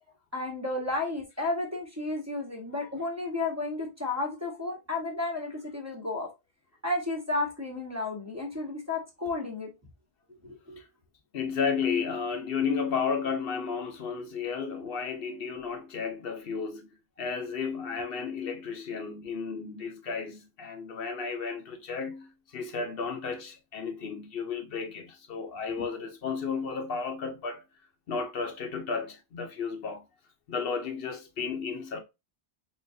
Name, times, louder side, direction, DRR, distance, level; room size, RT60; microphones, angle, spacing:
voice 1, 0.3-6.3 6.8-9.7 10.4-10.8, left 2 dB, 15° right, 1.0 m, -32 dB
voice 2, 11.3-16.9 17.2-27.6 28.1-30.0 30.5-32.0, left 5 dB, 70° left, 0.9 m, -33 dB
3.7 x 3.4 x 2.6 m
omnidirectional pair, 1.0 m